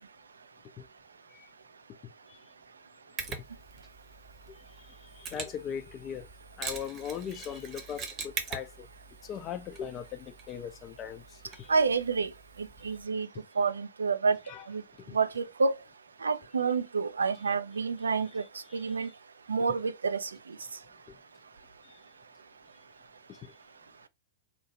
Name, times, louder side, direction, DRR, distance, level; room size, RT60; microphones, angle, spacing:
Mechanisms, 3.2-13.1, right 5 dB, 30° right, 0.8 m, -43 dB
voice 1, 5.2-6.3 6.6-8.9 9.2-11.2 11.5-11.7 12.9-13.0 13.3-13.4 14.5-14.6 15.0-15.2 18.7-18.8 21.1-21.2 23.3-23.5, left 8 dB, 30° left, 0.4 m, -39 dB
voice 2, 11.7-12.3 12.6-13.3 13.6-14.4 14.7-14.8 15.1-15.7 16.2-18.4 18.7-19.1 19.5-20.3, right 4 dB, 75° right, 0.3 m, -28 dB
2.9 x 2.2 x 2.7 m
figure-of-eight pair, 100°, 0 cm